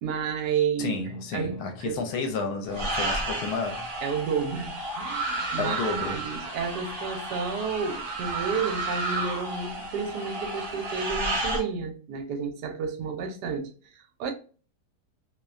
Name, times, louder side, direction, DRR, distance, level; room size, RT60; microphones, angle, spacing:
voice 1, 0.0-0.9 1.3-2.0 4.0-14.3, right 6 dB, 90° right, 1.2 m, -31 dB
voice 2, 0.8-3.9 5.6-6.3, left 4 dB, 75° left, 1.0 m, -31 dB
sound 1, 2.7-11.6, right 2 dB, 50° right, 0.8 m, -32 dB
2.8 x 2.1 x 2.3 m
omnidirectional pair, 1.7 m